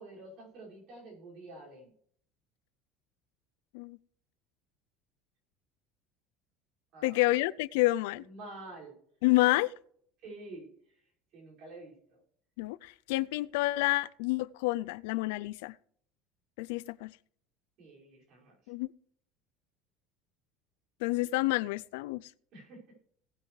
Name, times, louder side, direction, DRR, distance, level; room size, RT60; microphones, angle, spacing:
voice 1, 0.0-1.9 6.9-7.2 8.2-9.0 10.2-10.7 11.3-12.2 17.8-18.5 22.5-22.9, right 2 dB, 45° right, 5.6 m, -48 dB
voice 2, 7.0-8.2 9.2-9.7 12.6-15.7 16.6-17.1 18.7-18.9 21.0-22.3, left 19 dB, 85° left, 0.4 m, -29 dB
18.5 x 9.3 x 3.2 m
cardioid pair, 170°, 0 cm